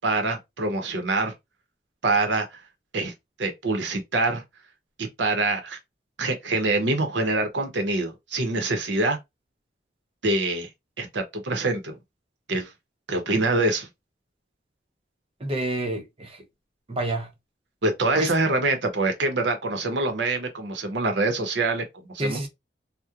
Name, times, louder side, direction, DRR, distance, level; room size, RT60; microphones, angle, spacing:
voice 1, 0.0-1.3 2.0-2.6 2.9-3.1 3.4-4.4 5.0-5.8 6.2-9.2 10.2-10.7 11.0-12.0 12.5-12.7 13.1-13.9 17.8-22.5, right 2 dB, 80° right, 0.8 m, -25 dB
voice 2, 15.4-16.4 16.9-17.3 18.1-18.3 22.2-22.5, right 1 dB, 30° right, 0.7 m, -28 dB
2.9 x 2.1 x 2.4 m
head